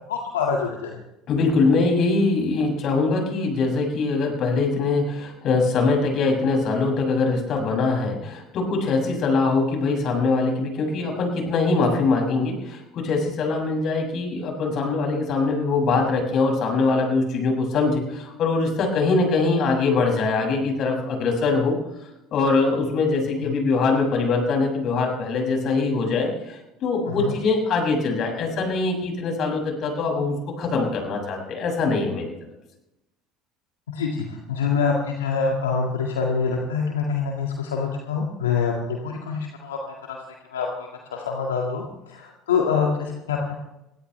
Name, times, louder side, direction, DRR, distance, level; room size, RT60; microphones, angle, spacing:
voice 1, 0.1-1.0 23.5-23.6 27.1-27.3 33.9-40.2 40.5-43.6, left 5 dB, 85° left, 0 dB, 2.0 m, -26 dB
voice 2, 1.3-21.8 22.3-32.3, left 3 dB, 55° left, 2 dB, 6.9 m, -23 dB
23.5 x 17.5 x 3.4 m, 0.90 s
hypercardioid pair, 70°, 0 cm